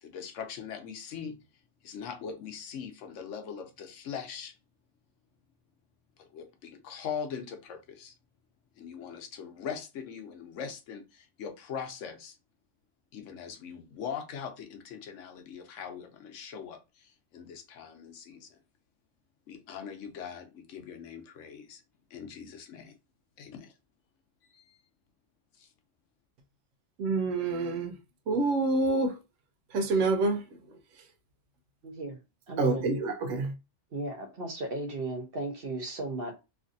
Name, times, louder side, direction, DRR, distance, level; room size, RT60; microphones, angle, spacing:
voice 1, 0.0-1.4 1.8-4.5 6.2-8.1 8.8-12.4 13.1-18.6 19.5-21.8 22.1-23.0 23.4-23.7 24.5-24.6 25.6-25.7, left 7 dB, 80° left, 1.0 m, -41 dB
voice 2, 27.0-28.0 28.3-29.2 29.7-30.4 32.6-33.5, right 3 dB, 80° right, 1.0 m, -27 dB
voice 3, 31.8-32.2 32.5-32.8 33.9-36.3, right 2 dB, 55° right, 1.0 m, -35 dB
3.2 x 2.5 x 2.5 m
omnidirectional pair, 1.3 m